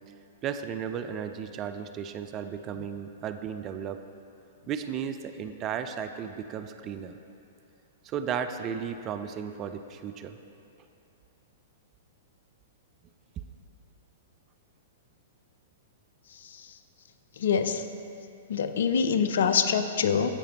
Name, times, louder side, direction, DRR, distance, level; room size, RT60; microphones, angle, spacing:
voice 1, 0.4-4.1 4.7-7.2 8.0-10.4, right 8 dB, 30° right, 9 dB, 0.4 m, -34 dB
voice 2, 17.4-17.9 18.5-20.3, left 6 dB, 60° left, 9 dB, 0.4 m, -25 dB
14.5 x 5.0 x 3.0 m, 2.7 s
figure-of-eight pair, 105°, 0 cm